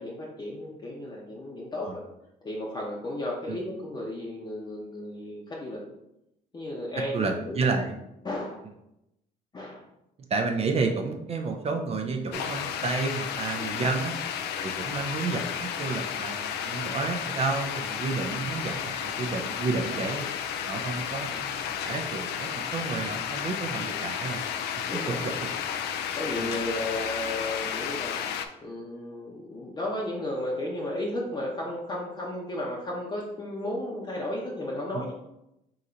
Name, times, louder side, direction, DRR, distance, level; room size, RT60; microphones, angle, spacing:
voice 1, 0.0-2.0 2.4-5.8 6.5-7.9 8.2-8.6 9.5-9.8 13.5-13.8 24.8-25.2 26.1-28.2 28.6-35.1, left 1 dB, 25° left, -3 dB, 0.7 m, -34 dB
voice 2, 7.1-7.9 10.3-14.2 14.6-20.3 20.7-24.5 24.9-25.5 26.4-26.5, right 4 dB, 35° right, 4 dB, 0.5 m, -31 dB
sound 1, 12.3-28.5, left 8 dB, 80° left, 0.4 m, -32 dB
3.8 x 2.6 x 4.3 m, 0.86 s
cardioid pair, 110°, 17 cm